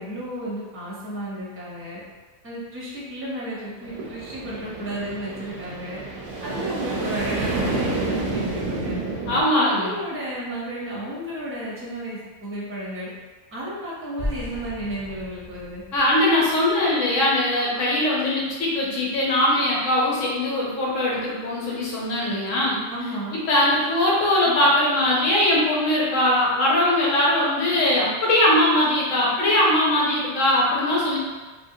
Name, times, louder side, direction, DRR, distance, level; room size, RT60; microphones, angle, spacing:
voice 1, 0.0-2.0 2.4-6.0 6.4-9.0 9.3-13.1 13.5-15.8 22.9-23.4, equal, 15° right, -6 dB, 0.6 m, -33 dB
sound 1, 3.8-9.4, right 3 dB, 55° right, 0.7 m, -29 dB
voice 2, 9.3-9.9 15.9-22.8 23.3-31.2, left 1 dB, 85° left, -5 dB, 1.2 m, -21 dB
sound 2, 14.2-17.2, left 1 dB, 35° left, 0.9 m, -36 dB
2.8 x 2.7 x 2.7 m, 1.3 s
omnidirectional pair, 1.3 m